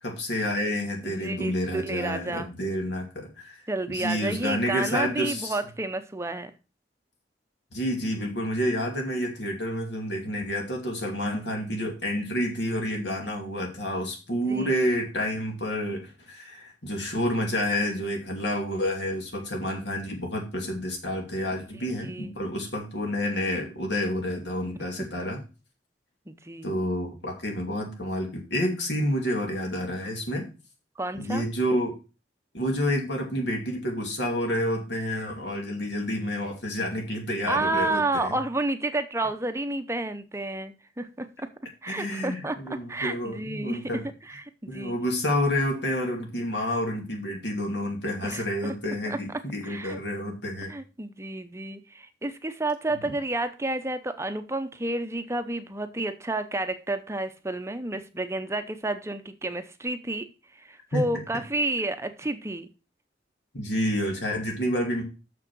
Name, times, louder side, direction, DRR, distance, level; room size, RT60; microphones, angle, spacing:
voice 1, 0.0-3.6 3.9-5.6 7.7-25.4 26.6-30.5 31.2-31.9 32.5-38.4 41.9-44.1 44.7-50.7 60.9-61.1 63.5-65.0, equal, 70° left, 1 dB, 2.5 m, -29 dB
voice 2, 1.0-2.5 3.7-6.5 14.5-14.8 22.0-22.3 24.7-25.1 26.3-26.8 31.0-31.4 37.5-41.5 41.8-45.0 48.2-48.7 49.1-49.2 49.6-50.0 50.7-60.3 60.5-62.7, right 2 dB, 15° right, 9 dB, 0.7 m, -31 dB
6.8 x 6.4 x 6.1 m, 0.31 s
head